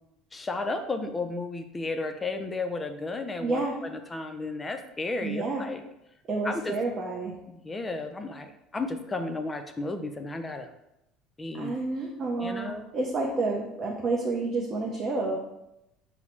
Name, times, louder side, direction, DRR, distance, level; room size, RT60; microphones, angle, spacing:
voice 1, 0.3-5.8 6.4-6.7 7.5-8.5 8.7-10.7 11.4-11.7 12.4-12.9, left 3 dB, 20° left, 7 dB, 0.3 m, -33 dB
voice 2, 3.4-3.8 5.2-5.6 6.3-7.4 11.5-15.4, right 3 dB, 40° right, -1 dB, 0.5 m, -29 dB
4.3 x 2.0 x 3.0 m, 0.87 s
supercardioid pair, 105°, 0 cm